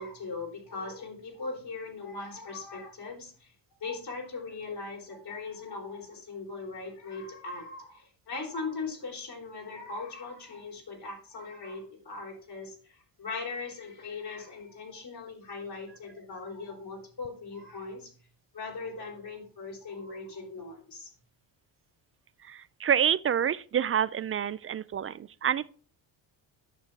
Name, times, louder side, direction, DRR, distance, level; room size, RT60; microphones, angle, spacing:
voice 1, 0.0-3.5 3.8-18.1 18.5-21.1, left 4 dB, 55° left, 3.7 m, -39 dB
voice 2, 22.5-25.7, right 8 dB, 30° right, 0.4 m, -28 dB
9.9 x 6.6 x 3.4 m
supercardioid pair, 70°, 49 cm